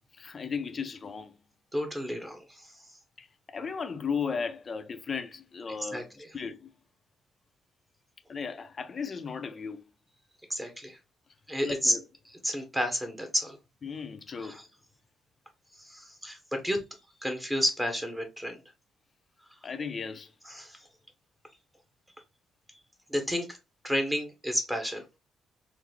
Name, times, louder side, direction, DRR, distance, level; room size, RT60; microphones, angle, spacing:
voice 1, 0.2-1.3 3.2-6.1 6.3-6.7 8.3-9.8 11.6-12.0 13.8-14.6 19.6-20.3, left 5 dB, 40° left, 0.5 m, -35 dB
voice 2, 1.7-2.7 5.8-6.3 10.5-11.0 11.5-12.0 12.4-13.6 14.4-14.7 15.8-16.8 17.2-18.6 20.5-20.9 23.1-23.5 23.8-25.0, equal, 10° right, 0.9 m, -31 dB
3.8 x 2.0 x 3.2 m
cardioid pair, 90°, 0 cm